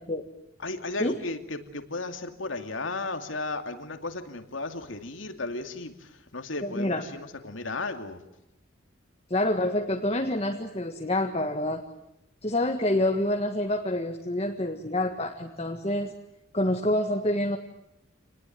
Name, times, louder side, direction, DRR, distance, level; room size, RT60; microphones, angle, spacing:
voice 1, 0.6-8.2, left 3 dB, 75° left, 7 dB, 2.5 m, -35 dB
voice 2, 6.6-7.0 9.3-11.8 12.4-16.1 16.5-17.6, left 1 dB, 30° left, 2 dB, 1.7 m, -27 dB
27.5 x 20.5 x 9.3 m, 0.84 s
head